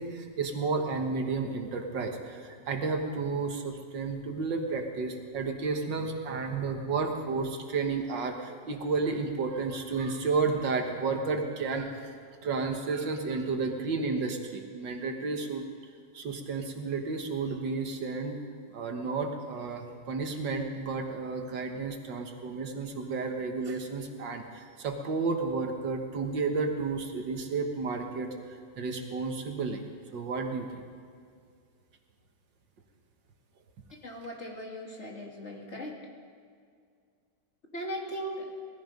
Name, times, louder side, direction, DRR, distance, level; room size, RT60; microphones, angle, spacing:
voice 1, 0.0-12.1 12.4-15.6 16.1-18.4 18.7-28.3 28.8-29.8 30.1-30.8, right 4 dB, 85° right, 4 dB, 2.1 m, -32 dB
voice 2, 34.0-35.9 37.7-38.5, equal, 40° left, 0 dB, 2.4 m, -38 dB
19.0 x 14.0 x 5.3 m, 2.2 s
omnidirectional pair, 1.9 m